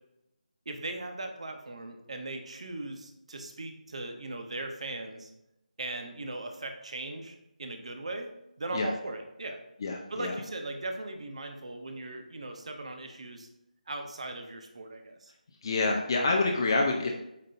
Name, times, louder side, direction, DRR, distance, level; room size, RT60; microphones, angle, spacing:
voice 1, 0.7-5.3 5.8-8.3 8.6-9.6 10.1-13.5 13.9-15.3, right 2 dB, 45° right, 5 dB, 0.9 m, -38 dB
voice 2, 9.8-10.4 15.6-17.1, left 3 dB, 30° left, 1 dB, 0.6 m, -27 dB
8.4 x 5.2 x 2.6 m, 0.88 s
figure-of-eight pair, 160°, 5 cm